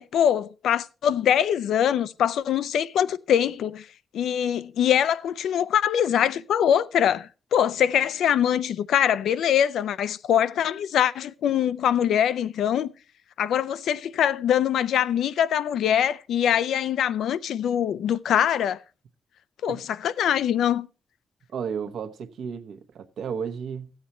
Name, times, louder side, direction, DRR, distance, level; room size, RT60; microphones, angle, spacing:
voice 1, 0.0-3.9 4.1-12.9 13.4-18.8 19.6-20.9, left 9 dB, 85° left, 0.5 m, -23 dB
voice 2, 21.5-23.9, right 7 dB, 70° right, 1.0 m, -33 dB
14.0 x 8.0 x 4.3 m
wide cardioid pair, 150°, 0 cm